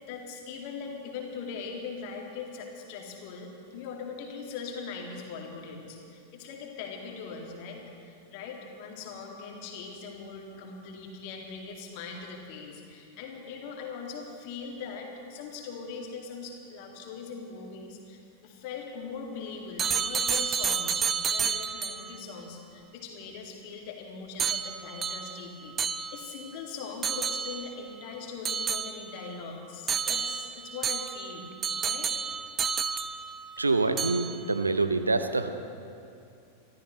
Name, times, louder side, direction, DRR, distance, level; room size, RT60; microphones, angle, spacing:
voice 1, 0.0-31.5 31.8-32.1, left 5 dB, 45° left, 1 dB, 2.3 m, -41 dB
sound 1, 19.8-22.2 24.4-26.5 27.0-27.8 28.4-29.3 29.9-33.6 34.0-34.5, right 6 dB, 20° right, 0.5 m, -31 dB
voice 2, 33.6-35.5, right 3 dB, 80° right, 9 dB, 0.7 m, -26 dB
24.5 x 14.0 x 3.2 m, 2.5 s
figure-of-eight pair, 90°, 0 cm